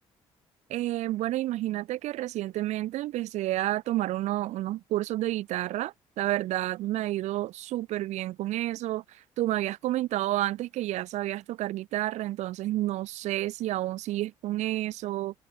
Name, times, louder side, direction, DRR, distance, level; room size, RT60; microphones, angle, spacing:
voice 1, 0.7-9.0 9.4-15.3, right 15 dB, 80° right, 5.5 m, -30 dB
cardioid pair, 90°, 12 cm